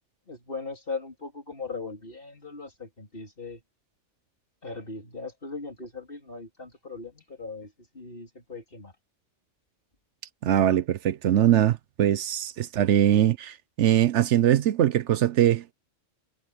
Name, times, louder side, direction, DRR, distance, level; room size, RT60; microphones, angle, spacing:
voice 1, 0.3-3.6 4.6-8.9, left 4 dB, 50° left, 3.8 m, -39 dB
voice 2, 10.4-15.7, right 11 dB, 70° right, 1.0 m, -22 dB
omnidirectional pair, 1.3 m